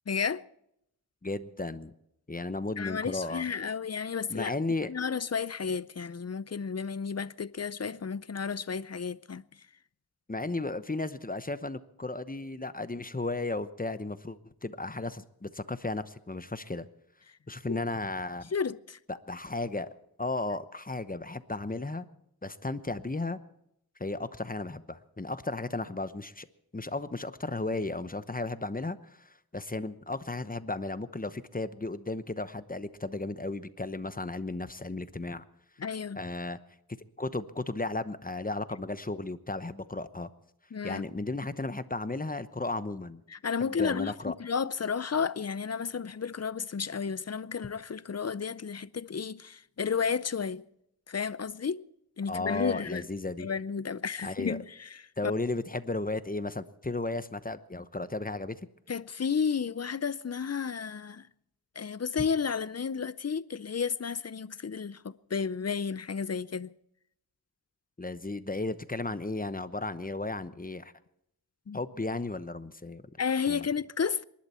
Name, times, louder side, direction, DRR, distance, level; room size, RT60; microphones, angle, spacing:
voice 1, 0.1-0.4 2.8-4.5 4.9-9.4 17.7-17.8 18.5-19.0 35.8-36.2 40.7-41.1 43.3-50.6 51.1-51.8 52.2-53.1 53.4-55.0 58.9-61.3 61.8-66.7 71.7-71.8 73.2-74.2, left 6 dB, 45° left, 0.6 m, -32 dB
voice 2, 1.2-1.9 2.3-3.4 4.3-4.9 10.3-16.9 17.5-18.5 19.1-19.9 20.2-22.1 22.4-23.4 24.0-26.5 26.7-35.4 36.1-36.6 37.2-40.3 40.8-43.2 43.6-44.3 52.3-53.5 54.2-54.6 55.2-58.6 68.0-70.9 71.7-73.0 73.5-73.7, left 2 dB, 25° left, 0.9 m, -34 dB
26.5 x 11.5 x 4.4 m
wide cardioid pair, 50°, 37 cm